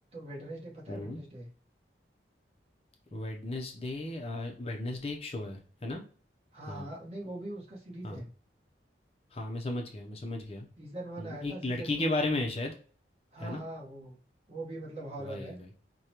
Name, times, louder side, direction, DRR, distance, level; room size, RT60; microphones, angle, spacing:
voice 1, 0.1-1.5 6.5-8.3 10.8-12.2 13.3-14.2 14.5-15.6, right 1 dB, 35° right, -3 dB, 1.1 m, -42 dB
voice 2, 0.9-1.2 3.1-6.0 6.7-6.9 8.0-8.2 9.3-10.7 11.2-12.8 13.4-13.6 15.2-15.7, left 2 dB, 35° left, 1 dB, 0.5 m, -35 dB
4.9 x 2.2 x 2.8 m, 0.42 s
head